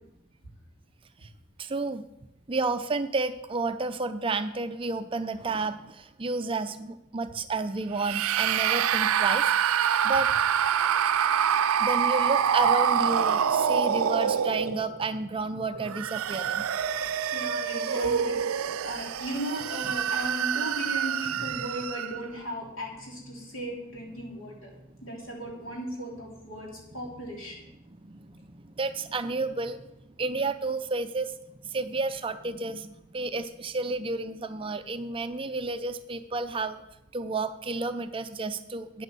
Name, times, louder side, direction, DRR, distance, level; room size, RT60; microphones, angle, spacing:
voice 1, 1.6-2.1 2.5-10.3 11.8-16.6 28.1-28.5 28.8-29.8 30.2-31.3 31.6-36.8 37.1-39.0, right 3 dB, 25° right, 10 dB, 0.4 m, -31 dB
sound 1, 8.0-15.0 15.7-22.3, right 8 dB, 80° right, 0.5 m, -26 dB
voice 2, 17.3-24.7 25.0-27.7, equal, 65° left, -1 dB, 3.6 m, -37 dB
9.0 x 8.5 x 6.8 m, 0.89 s
head